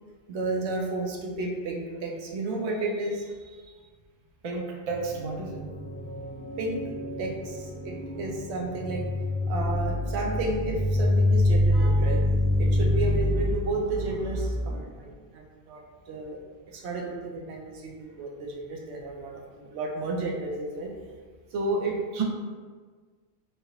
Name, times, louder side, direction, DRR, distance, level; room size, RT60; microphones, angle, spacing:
voice 1, 0.3-3.8 6.6-6.8 7.2-12.2 12.5-16.4 16.7-20.9 21.5-22.2, right 2 dB, 80° right, 0 dB, 0.9 m, -32 dB
voice 2, 4.4-5.6 22.2-22.3, right 4 dB, 50° right, -1 dB, 0.5 m, -31 dB
sound 1, 4.9-13.5, left 1 dB, 10° left, 0.4 m, -26 dB
3.1 x 2.7 x 2.8 m, 1.5 s
omnidirectional pair, 1.1 m